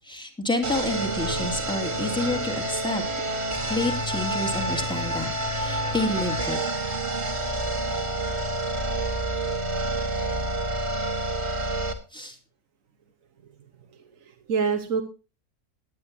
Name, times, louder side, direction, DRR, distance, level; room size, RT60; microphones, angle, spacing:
voice 1, 0.0-3.3 3.6-6.6 12.1-12.4, left 2 dB, 5° left, 4 dB, 2.5 m, -29 dB
sound 1, 0.6-11.9, right 1 dB, 45° right, 2.1 m, -28 dB
voice 2, 13.9-15.0, right 6 dB, 60° right, 4 dB, 1.6 m, -27 dB
18.5 x 10.5 x 2.9 m, 0.31 s
omnidirectional pair, 1.6 m